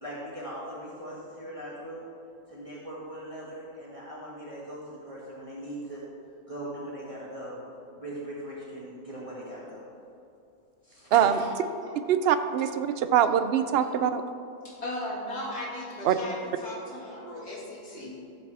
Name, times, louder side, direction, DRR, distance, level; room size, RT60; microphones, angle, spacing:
voice 1, 0.0-2.0 2.5-6.0 6.5-7.6 7.9-9.8 10.8-11.6 11.8-11.9, right 1 dB, 20° right, -7 dB, 2.1 m, -40 dB
voice 2, 12.1-14.2 16.0-16.1, right 9 dB, 65° right, 10 dB, 0.6 m, -23 dB
voice 3, 14.6-18.2, left 1 dB, 75° left, -4 dB, 2.8 m, -37 dB
14.5 x 8.1 x 3.5 m, 2.7 s
omnidirectional pair, 1.6 m